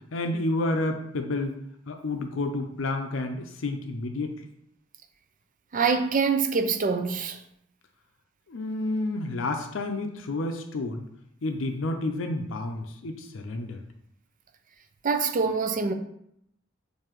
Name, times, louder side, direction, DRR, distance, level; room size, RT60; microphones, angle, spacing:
voice 1, 0.1-1.6 1.9-4.5 8.5-11.0 11.4-13.8, left 2 dB, 75° left, 0.5 m, -30 dB
voice 2, 5.7-7.4 15.0-15.9, right 5 dB, 40° right, 0.4 m, -25 dB
6.7 x 2.6 x 3.0 m
head